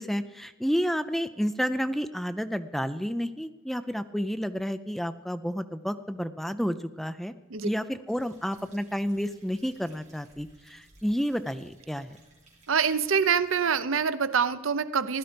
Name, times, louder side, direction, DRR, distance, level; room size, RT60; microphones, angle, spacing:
voice 1, 0.0-7.3 7.6-12.2, equal, ahead, 10 dB, 0.4 m, -30 dB
sound 1, 8.1-13.7, right 2 dB, 35° right, 4.6 m, -59 dB
voice 2, 12.7-15.2, right 6 dB, 65° right, 13 dB, 0.7 m, -25 dB
15.5 x 12.0 x 5.1 m, 1.1 s
head